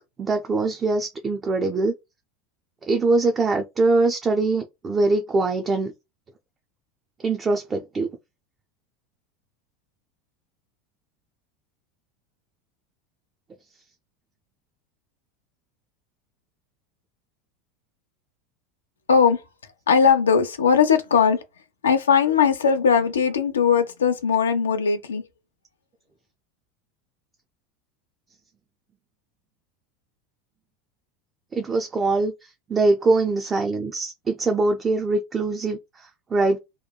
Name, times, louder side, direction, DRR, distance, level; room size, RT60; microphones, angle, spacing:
voice 1, 0.2-1.9 2.8-5.9 7.2-8.1 31.5-36.6, right 3 dB, 25° right, 0.4 m, -23 dB
voice 2, 19.1-19.4 19.9-21.4 21.8-25.3, left 6 dB, 85° left, 0.4 m, -19 dB
2.9 x 2.2 x 2.2 m
hypercardioid pair, 85°, 0 cm